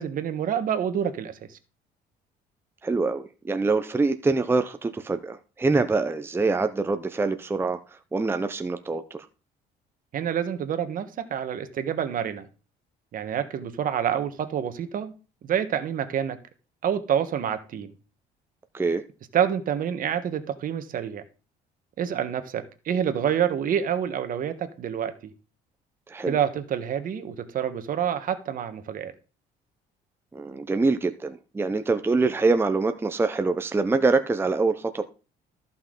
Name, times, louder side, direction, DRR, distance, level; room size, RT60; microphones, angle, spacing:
voice 1, 0.0-1.6 10.1-12.5 13.1-15.1 15.4-16.4 16.8-17.9 19.3-21.2 22.0-25.3 26.3-29.1, right 9 dB, 55° right, 1.3 m, -27 dB
voice 2, 2.8-7.8 8.1-9.0 18.7-19.0 26.1-26.4 30.3-35.0, right 3 dB, 15° right, 0.7 m, -24 dB
14.0 x 5.7 x 3.8 m
cardioid pair, 110°, 17 cm